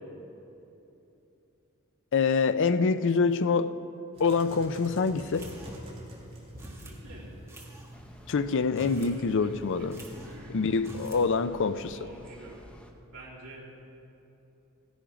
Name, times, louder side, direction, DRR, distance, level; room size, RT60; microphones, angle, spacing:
voice 1, 2.1-3.8 4.2-5.5 8.3-10.0 10.5-12.0, left 4 dB, 60° left, 12 dB, 0.5 m, -25 dB
sound 1, 4.1-10.4, equal, 30° right, 3.4 m, -47 dB
sound 2, 5.3-6.0 6.6-7.0 7.5-7.9 8.6-9.2 9.4-9.5 9.9-10.4 10.8-11.3, right 1 dB, 15° right, 1.6 m, -46 dB
voice 2, 6.8-7.5 8.8-10.8 11.9-12.6 13.0-13.7, right 1 dB, 75° right, -7 dB, 3.2 m, -48 dB
sound 3, 7.9-12.9, equal, 5° left, 0.9 m, -52 dB
16.0 x 10.0 x 5.1 m, 2.9 s
head